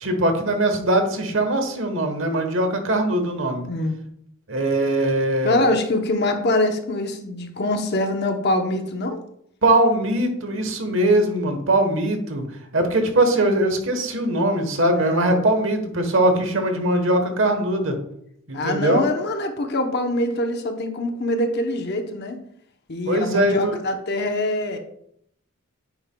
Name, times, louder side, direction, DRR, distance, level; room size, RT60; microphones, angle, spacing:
voice 1, 0.0-3.6 4.5-5.6 9.6-12.4 12.7-18.0 18.5-19.0 23.1-23.8, right 1 dB, 65° right, 6 dB, 1.1 m, -21 dB
voice 2, 5.4-9.2 15.0-15.4 16.7-16.9 18.5-22.4 22.9-24.8, left 1 dB, 50° left, 5 dB, 0.8 m, -24 dB
8.9 x 5.5 x 2.2 m, 0.72 s
head